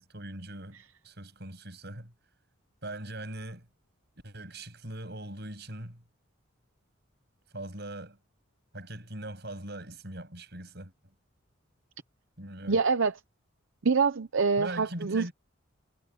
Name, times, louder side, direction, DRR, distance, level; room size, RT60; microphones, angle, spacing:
voice 1, 0.0-2.1 2.8-3.7 4.2-6.0 7.5-8.2 8.7-10.9 12.4-12.8 14.6-15.3, right 1 dB, 55° right, 7.8 m, -41 dB
voice 2, 12.7-13.1 13.8-15.3, right 5 dB, 75° right, 0.7 m, -25 dB
head